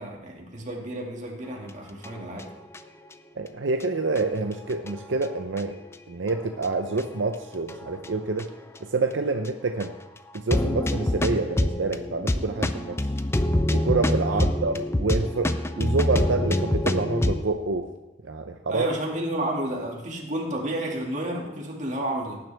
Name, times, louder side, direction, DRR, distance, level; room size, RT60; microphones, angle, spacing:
voice 1, 0.0-2.5 14.3-14.4 18.7-22.4, right 1 dB, 40° right, -1 dB, 2.2 m, -31 dB
sound 1, 2.0-2.8 3.1-3.2 3.8-3.9 4.2-4.3 4.7-5.6 6.3-6.7 6.9-7.0 7.7-8.1 8.4-8.5 8.8-8.9 9.4-9.5 9.8-9.9 10.3-17.4, left 1 dB, 15° left, 0.5 m, -26 dB
voice 2, 3.4-5.8 6.1-8.5 8.8-10.0 10.3-13.0 13.7-17.9 18.2-18.9, right 3 dB, 80° right, 5 dB, 0.7 m, -27 dB
18.0 x 9.6 x 3.5 m, 1.1 s
head